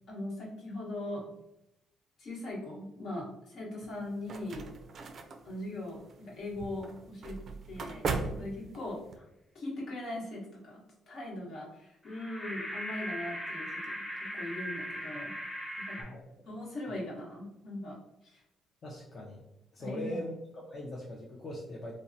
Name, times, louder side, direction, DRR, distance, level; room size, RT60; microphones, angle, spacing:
voice 1, 0.1-1.3 2.2-4.6 5.4-7.4 7.7-9.2 9.5-14.0 14.3-15.3 15.8-15.9 16.4-18.4 19.8-20.2, left 1 dB, 70° left, -4 dB, 1.1 m, -40 dB
sound 1, 3.8-9.2, right 4 dB, 55° right, 0.3 m, -39 dB
sound 2, 12.0-16.0, equal, 15° left, 0.9 m, -39 dB
voice 2, 16.0-16.4 18.8-19.4 19.7-22.0, left 1 dB, 45° left, -3 dB, 0.4 m, -41 dB
2.8 x 2.0 x 2.6 m, 0.86 s
cardioid pair, 90°, 0 cm